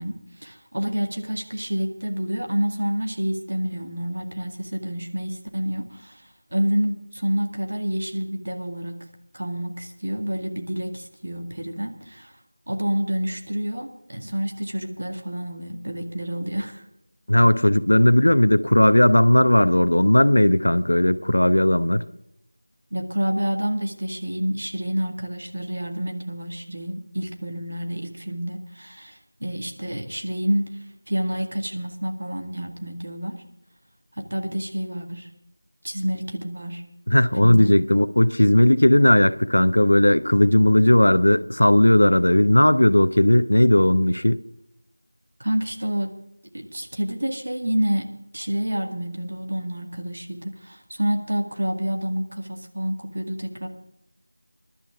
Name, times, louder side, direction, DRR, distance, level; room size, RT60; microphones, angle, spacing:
voice 1, 0.0-9.0 9.3-12.3 12.7-16.8 22.9-30.7 31.1-33.4 34.2-35.3 35.8-36.8 37.4-37.7 45.4-46.1 46.5-48.1 48.3-53.7, equal, 45° right, 2.0 m, -28 dB
voice 2, 17.3-22.0 37.1-44.4, left 1 dB, 75° left, 0.8 m, -17 dB
21.5 x 12.0 x 3.7 m
figure-of-eight pair, 180°, 0 cm